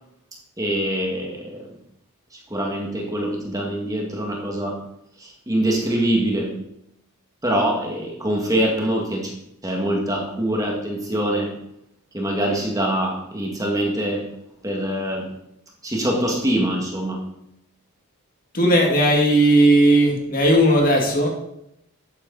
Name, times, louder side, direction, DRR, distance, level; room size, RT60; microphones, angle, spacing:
voice 1, 0.6-1.6 2.5-4.8 5.2-6.6 7.4-9.3 9.6-11.5 12.1-14.3 14.6-15.3 15.8-17.2, right 1 dB, 15° right, 0 dB, 2.0 m, -24 dB
voice 2, 18.5-21.3, right 1 dB, 40° left, 0 dB, 2.3 m, -16 dB
12.5 x 9.6 x 4.1 m, 0.79 s
head